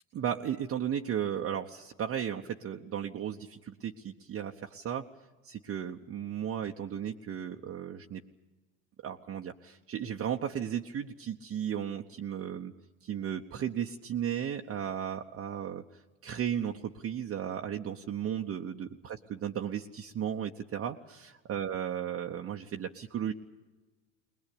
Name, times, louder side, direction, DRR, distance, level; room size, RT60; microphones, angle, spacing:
voice 1, 0.1-5.1 5.4-8.2 9.0-12.7 13.0-23.3, right 9 dB, 35° right, 2 dB, 1.0 m, -35 dB
20.5 x 20.5 x 8.6 m, 1.2 s
hypercardioid pair, 80°, 40 cm